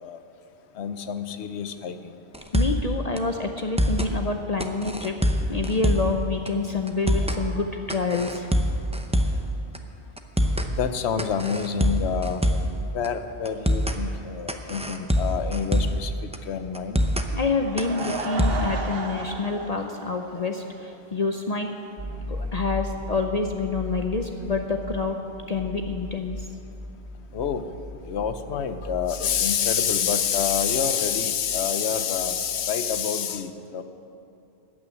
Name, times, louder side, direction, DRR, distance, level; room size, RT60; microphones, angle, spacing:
voice 1, 0.8-2.0 10.7-12.4 12.9-16.1 16.5-17.0 27.3-27.7 28.1-33.8, left 7 dB, 85° left, 10 dB, 1.0 m, -27 dB
sound 1, 2.3-2.9 3.2-3.3 3.6-4.1 4.6-6.2 6.5-6.6 6.9-7.4 7.9-9.5 9.7-9.8 10.2-10.7 11.2-12.8 13.0-13.1 13.5-14.0 14.5-16.1 16.3-16.4 16.7-17.3 17.8-18.7, equal, 10° right, 0.5 m, -24 dB
voice 2, 2.5-8.5 17.3-21.7 22.3-25.2 25.5-26.4, left 3 dB, 45° left, 4 dB, 0.6 m, -27 dB
Laughter / Crowd, 17.6-20.9 21.2-21.3 21.9-22.0 22.1-22.2, right 3 dB, 65° right, 1.2 m, -34 dB
sound 2, 22.0-32.9, left 1 dB, 40° right, 2.2 m, -38 dB
14.0 x 6.2 x 9.6 m, 2.6 s
omnidirectional pair, 1.1 m